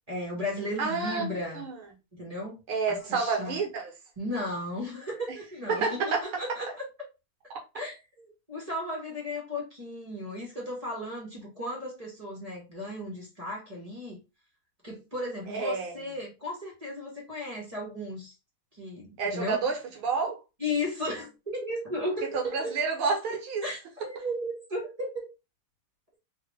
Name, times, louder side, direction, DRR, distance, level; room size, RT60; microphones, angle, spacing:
voice 1, 0.1-1.6 2.1-2.6 2.9-3.6 4.2-6.9 7.7-14.2 14.8-18.3 18.7-19.6 20.6-22.7 23.6-25.2, left 1 dB, 20° right, 1.1 m, -35 dB
voice 2, 0.8-1.2 1.5-1.8 2.7-3.9 5.7-6.4 15.5-15.9 19.2-20.4 22.3-23.6, right 4 dB, 70° right, 1.9 m, -29 dB
3.8 x 2.8 x 3.4 m
omnidirectional pair, 2.4 m